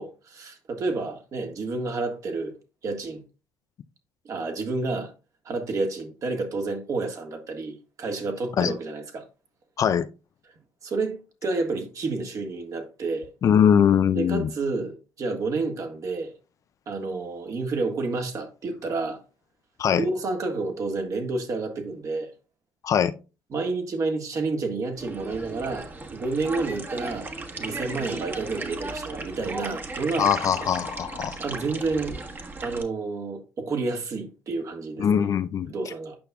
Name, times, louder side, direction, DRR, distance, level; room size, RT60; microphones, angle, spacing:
voice 1, 0.0-2.6 2.8-3.2 4.2-5.1 5.4-9.2 10.8-13.3 14.1-16.3 16.9-19.2 20.0-22.3 23.5-27.3 27.6-30.3 31.4-32.2 32.6-35.3 35.7-36.2, right 3 dB, 50° right, 1.7 m, -30 dB
voice 2, 9.8-10.1 13.4-14.5 19.8-20.1 22.8-23.2 30.2-31.4 35.0-35.9, left 8 dB, 50° left, 0.5 m, -21 dB
sound 1, 25.0-32.8, right 3 dB, 30° right, 1.4 m, -36 dB
8.6 x 5.6 x 2.3 m
hypercardioid pair, 65°, 7 cm